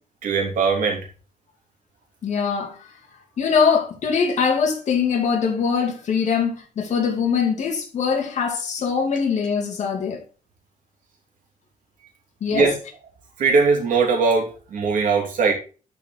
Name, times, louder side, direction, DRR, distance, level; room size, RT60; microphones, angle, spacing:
voice 1, 0.2-1.1 12.5-12.8 13.4-15.5, right 4 dB, 70° right, 3.0 m, -20 dB
voice 2, 2.2-2.9 3.4-10.2 12.4-12.7, left 6 dB, 55° left, 2.8 m, -22 dB
11.5 x 5.0 x 4.0 m
wide cardioid pair, 175°, 14 cm